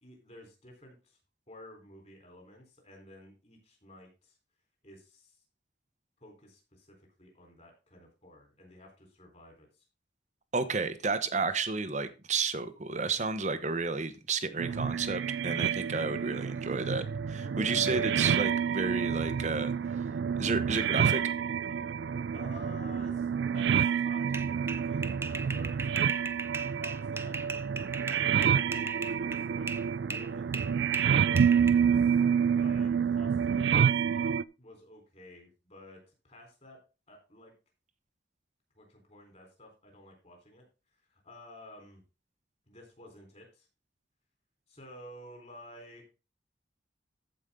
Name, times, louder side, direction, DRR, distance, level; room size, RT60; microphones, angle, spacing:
voice 1, 0.0-1.2 1.5-4.4 4.8-5.4 6.2-9.8 17.5-18.1 22.3-23.3 23.5-26.1 26.8-29.7 30.0-30.5 31.2-32.1 32.5-36.8 37.1-37.5 38.8-40.7 41.1-42.0 42.7-43.7 44.7-46.1, left 1 dB, 35° left, 3.9 m, -52 dB
voice 2, 10.5-20.0 20.4-21.2, right 4 dB, 40° right, 0.9 m, -32 dB
sound 1, 14.6-34.4, right 7 dB, 65° right, 0.3 m, -28 dB
sound 2, 24.3-29.9 30.1-31.7, right 3 dB, 15° right, 0.5 m, -38 dB
14.5 x 5.2 x 3.7 m
head